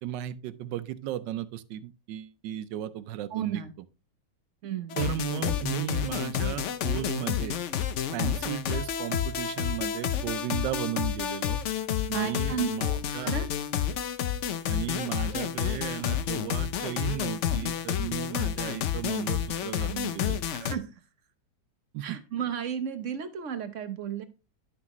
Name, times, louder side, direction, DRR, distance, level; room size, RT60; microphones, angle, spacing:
voice 1, 0.0-3.6 5.0-7.6 8.1-11.6 12.1-13.3 14.7-20.4 21.9-22.2, right 12 dB, 90° right, 1.3 m, -35 dB
voice 2, 3.3-3.7 4.6-5.0 12.1-13.4 20.5-20.9 22.0-24.2, right 8 dB, 55° right, 1.0 m, -33 dB
sound 1, 4.9-20.7, left 9 dB, 65° left, 0.7 m, -30 dB
10.5 x 5.9 x 3.0 m
omnidirectional pair, 1.9 m